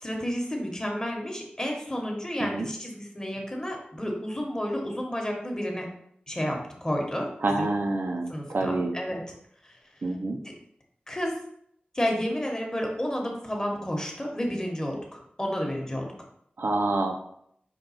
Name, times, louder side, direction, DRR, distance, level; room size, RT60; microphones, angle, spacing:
voice 1, 0.0-5.9 6.3-7.7 8.3-9.2 9.6-9.8 10.4-10.5 11.1-11.4 11.9-16.1, equal, 20° left, 1 dB, 1.0 m, -31 dB
voice 2, 7.4-9.0 10.0-10.4 16.6-17.2, right 2 dB, 80° right, 3 dB, 0.5 m, -27 dB
5.2 x 2.2 x 4.1 m, 0.71 s
wide cardioid pair, 60°, 3 cm